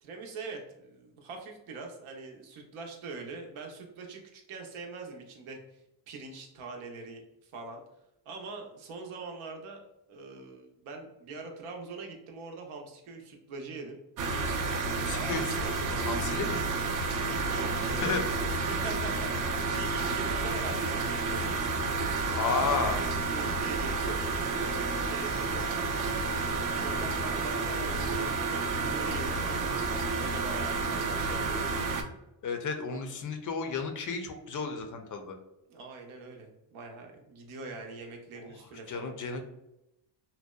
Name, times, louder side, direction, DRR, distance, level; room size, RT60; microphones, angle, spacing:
voice 1, 0.0-5.6 6.1-7.8 8.3-14.0 14.6-15.7 17.5-21.4 22.3-24.2 24.6-29.8 30.2-31.6 35.7-39.1, right 3 dB, 85° right, 2 dB, 0.7 m, -43 dB
sound 1, 14.2-32.0, right 3 dB, 45° right, 0.4 m, -30 dB
voice 2, 15.0-16.6 18.0-18.2 18.6-18.7 22.3-23.0 32.4-35.3 38.4-38.5 38.9-39.4, left 4 dB, 40° left, 5 dB, 0.4 m, -32 dB
2.7 x 2.0 x 2.2 m, 0.88 s
cardioid pair, 80°, 48 cm